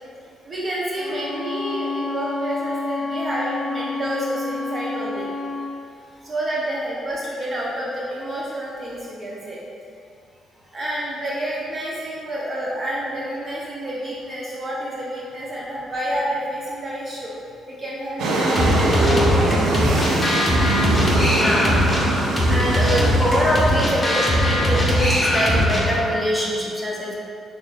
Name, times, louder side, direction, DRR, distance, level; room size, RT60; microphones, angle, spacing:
voice 1, 0.4-5.3 6.2-9.6 10.7-17.3 17.7-20.2, right 1 dB, 35° right, -6 dB, 0.6 m, -29 dB
Bowed string instrument, 0.9-5.8, left 3 dB, 55° left, 0.6 m, -29 dB
sound 1, 18.2-25.6, right 2 dB, 80° right, 0.5 m, -23 dB
sound 2, 18.6-26.2, left 1 dB, 25° left, 0.7 m, -21 dB
voice 2, 21.2-21.8 22.5-27.2, equal, 5° right, -6 dB, 0.8 m, -23 dB
6.2 x 2.5 x 2.4 m, 2.4 s
cardioid pair, 90°, 0 cm